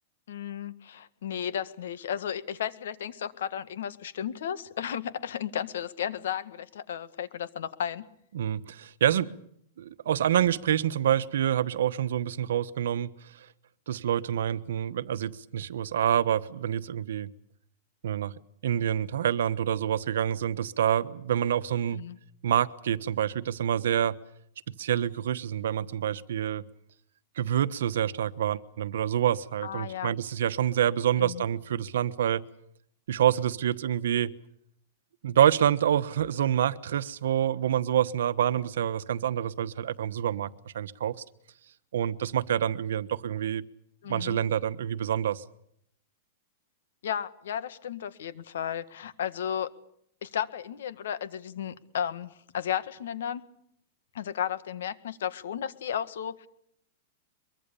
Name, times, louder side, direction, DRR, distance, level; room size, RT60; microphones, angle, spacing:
voice 1, 0.3-8.0 21.9-22.2 29.6-30.2 31.2-31.4 44.0-44.4 47.0-49.7 50.2-53.4 54.1-56.5, left 9 dB, 80° left, 1.7 m, -34 dB
voice 2, 8.3-9.3 9.8-13.1 13.9-17.3 18.0-18.3 18.6-22.0 22.4-24.2 24.8-26.6 27.4-32.4 33.1-34.3 35.2-41.1 41.9-43.6 44.1-45.4, right 10 dB, 80° right, 1.2 m, -27 dB
23.5 x 23.0 x 7.0 m
supercardioid pair, 170°, 0 cm